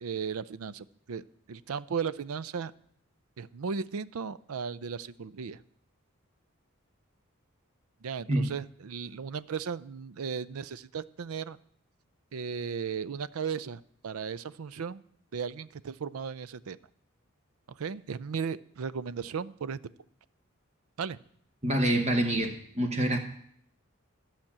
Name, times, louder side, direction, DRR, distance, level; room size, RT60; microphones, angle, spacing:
voice 1, 0.0-1.2 1.5-2.7 3.4-5.6 8.0-11.6 12.3-15.0 15.3-16.8 17.8-19.8 21.0-21.2, right 6 dB, 85° right, 18 dB, 0.5 m, -36 dB
voice 2, 21.6-23.2, right 1 dB, 30° right, 4 dB, 1.0 m, -26 dB
13.5 x 5.9 x 8.6 m, 0.66 s
head